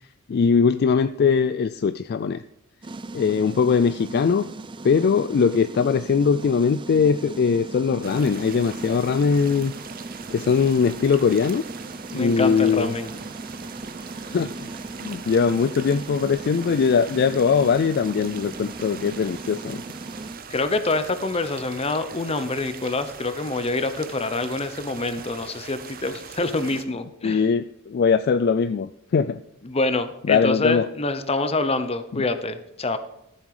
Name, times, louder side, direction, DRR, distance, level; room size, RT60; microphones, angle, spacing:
voice 1, 0.3-2.4 3.1-4.5 4.8-9.7 10.3-11.6 12.1-12.9 14.3-14.7 15.0-19.8 27.2-29.4 30.3-30.8, left 5 dB, 45° left, 13 dB, 0.3 m, -21 dB
sound 1, 2.8-20.4, right 2 dB, 20° right, 0.4 m, -38 dB
sound 2, 8.0-26.8, right 6 dB, 40° right, 0.8 m, -41 dB
voice 2, 12.1-13.1 20.5-27.5 29.6-33.0, left 2 dB, 30° left, 10 dB, 0.8 m, -26 dB
14.0 x 7.4 x 4.9 m, 0.81 s
head